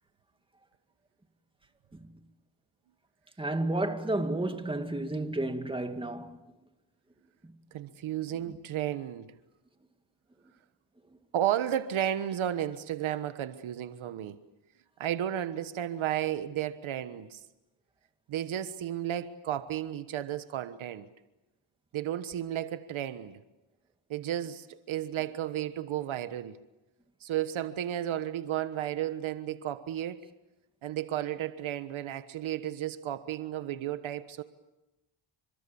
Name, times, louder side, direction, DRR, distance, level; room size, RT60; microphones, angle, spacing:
voice 1, 3.4-6.3, right 2 dB, 10° right, 2.3 m, -31 dB
voice 2, 7.7-9.3 11.3-14.4 15.0-17.4 18.3-21.1 21.9-23.4 24.1-26.6 27.2-30.2 30.8-34.4, right 11 dB, 70° right, 1.4 m, -33 dB
30.0 x 25.5 x 7.1 m
cardioid pair, 100°, 49 cm